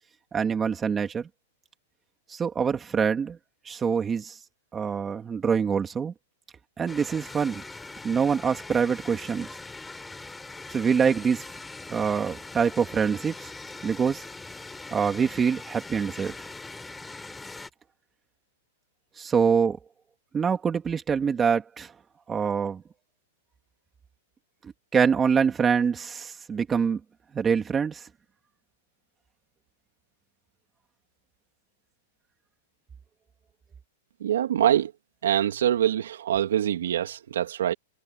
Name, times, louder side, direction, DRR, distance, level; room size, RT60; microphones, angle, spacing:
voice 1, 0.3-1.3 2.3-3.4 3.6-4.4 4.7-6.1 6.8-7.6 8.0-9.5 10.7-11.5 11.9-13.5 13.8-14.2 14.9-16.3 19.2-19.8 20.3-21.9 22.3-22.8 24.6-27.0 27.3-28.1, right 6 dB, 15° right, 2.9 m, -25 dB
sound 1, 6.9-17.7, left 3 dB, 5° left, 6.6 m, -42 dB
voice 2, 34.2-34.9 35.2-37.7, right 10 dB, 80° right, 3.0 m, -24 dB
hypercardioid pair, 145°, 0 cm